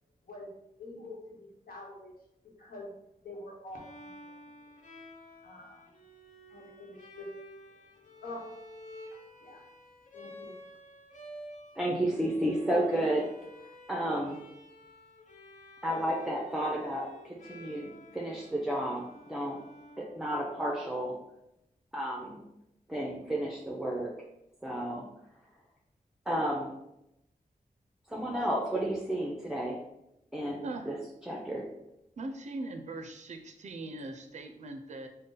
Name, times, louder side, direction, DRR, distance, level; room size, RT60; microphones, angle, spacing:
voice 1, 0.8-2.1 2.6-2.9 3.2-4.4 5.4-5.9 6.5-7.3 8.2-8.5 9.4-9.6 10.1-10.6, left 2 dB, 80° left, -2 dB, 1.0 m, -46 dB
Bowed string instrument, 3.7-20.6, left 1 dB, 60° left, 0.7 m, -51 dB
voice 2, 11.8-13.3 13.9-14.4 15.8-19.6 20.0-21.1 21.9-22.4 22.9-24.1 24.6-25.1 26.3-26.7 28.1-29.8 30.3-31.0 31.3-31.7, right 1 dB, 5° right, -3 dB, 0.5 m, -32 dB
voice 3, 30.6-31.0 32.2-35.1, right 2 dB, 50° right, 6 dB, 0.4 m, -40 dB
3.8 x 2.1 x 3.8 m, 0.85 s
wide cardioid pair, 70°, 15 cm